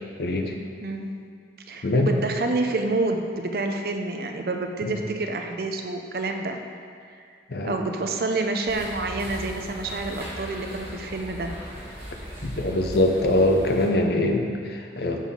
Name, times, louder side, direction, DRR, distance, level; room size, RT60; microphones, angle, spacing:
voice 1, 0.2-0.5 1.8-2.1 4.8-4.9 7.5-7.8 12.4-15.3, left 1 dB, 60° left, 3 dB, 0.6 m, -23 dB
voice 2, 0.8-1.1 1.7-6.6 7.6-11.5, right 2 dB, 55° right, 4 dB, 0.5 m, -28 dB
Queens Park - Farmers Market, 8.7-13.9, equal, 10° right, 1.7 m, -38 dB
6.4 x 3.7 x 5.3 m, 2.2 s
head